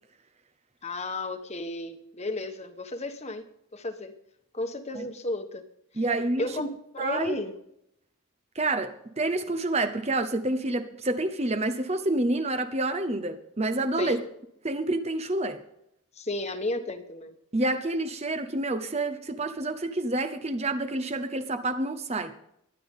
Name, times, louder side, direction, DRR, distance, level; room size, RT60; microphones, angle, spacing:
voice 1, 0.8-3.4 3.7-4.2 4.5-5.7 5.9-6.0 6.4-7.6 14.0-14.2 16.1-17.4, left 2 dB, 30° left, 1.3 m, -33 dB
voice 2, 6.0-6.5 7.0-7.3 8.5-14.2 14.6-15.6 17.5-22.3, right 2 dB, 30° right, 0.8 m, -28 dB
23.0 x 9.9 x 3.7 m
head